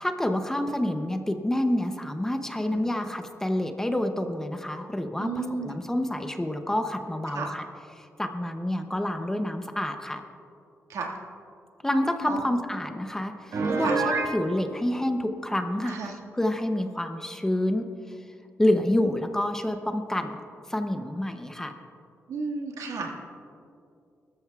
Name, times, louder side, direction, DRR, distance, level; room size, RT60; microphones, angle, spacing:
voice 1, 0.0-7.7 8.0-10.2 11.8-18.2 18.6-20.4 20.7-21.7, left 1 dB, 10° left, 6 dB, 0.6 m, -28 dB
voice 2, 5.2-5.8 7.3-7.5 8.9-9.0 10.9-11.1 12.3-12.5 13.8-14.0 15.8-16.1 22.3-23.1, right 4 dB, 85° right, 0 dB, 1.8 m, -33 dB
Piano, 13.5-14.3, right 4 dB, 70° right, 1.5 m, -26 dB
21.0 x 13.0 x 2.3 m, 2.5 s
wide cardioid pair, 165°, 6 cm